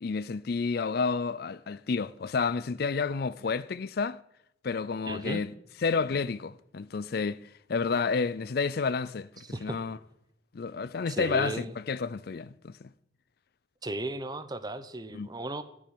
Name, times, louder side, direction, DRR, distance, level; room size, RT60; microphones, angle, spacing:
voice 1, 0.0-4.2 4.6-5.5 5.8-7.4 7.7-10.0 10.5-12.9 15.1-15.3, left 4 dB, 55° left, 0.4 m, -30 dB
voice 2, 5.1-5.4 9.4-9.8 11.1-11.7 13.8-15.6, right 2 dB, 20° right, 0.8 m, -35 dB
14.5 x 6.2 x 9.7 m
head